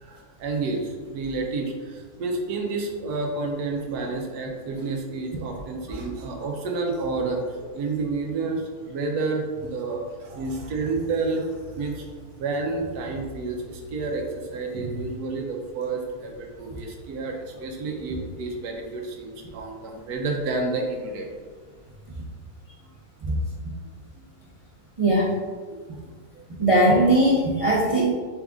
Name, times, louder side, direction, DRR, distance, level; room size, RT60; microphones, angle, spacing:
voice 1, 0.0-7.4 7.7-12.1 12.4-21.3 25.7-26.0 26.3-26.4, right 3 dB, 85° right, 2 dB, 1.3 m, -30 dB
voice 2, 25.0-25.3 26.6-28.1, right 1 dB, 50° right, -6 dB, 0.4 m, -19 dB
4.0 x 3.6 x 3.5 m, 1.5 s
omnidirectional pair, 1.6 m